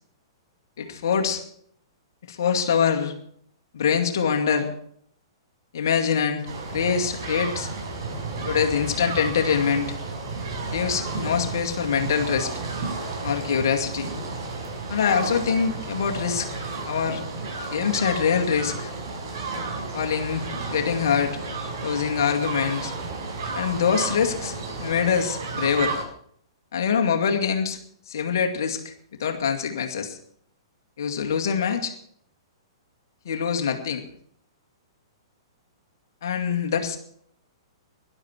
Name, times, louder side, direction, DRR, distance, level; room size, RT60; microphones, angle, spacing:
voice 1, 0.8-1.4 2.3-3.1 3.7-4.7 5.7-7.7 8.5-9.9 10.7-12.5 13.2-14.1 14.9-16.5 16.9-17.2 17.7-18.9 19.9-21.4 21.8-22.9 23.5-25.9 26.7-27.8 28.1-28.9 29.2-30.2 31.0-31.9 33.3-34.0 36.2-37.0, left 7 dB, 55° left, 4 dB, 2.2 m, -24 dB
sound 1, 6.5-26.0, right 3 dB, 50° right, 5.8 m, -32 dB
19.0 x 12.0 x 4.5 m, 0.65 s
figure-of-eight pair, 110°, 2 cm